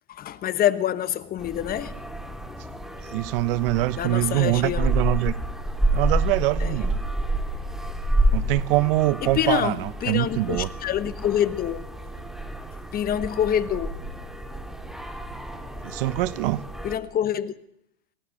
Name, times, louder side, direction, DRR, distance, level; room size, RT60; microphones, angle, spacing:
voice 1, 0.1-2.0 4.0-5.0 6.6-6.8 9.2-11.9 12.9-14.0 16.8-17.5, left 10 dB, 30° left, 1.2 m, -26 dB
sound 1, 1.4-17.0, right 1 dB, ahead, 2.6 m, -29 dB
voice 2, 3.1-5.3 5.9-7.0 8.3-9.7 10.1-10.7 15.8-16.6, right 18 dB, 60° right, 1.2 m, -24 dB
28.5 x 15.5 x 6.5 m
hypercardioid pair, 125°, 32 cm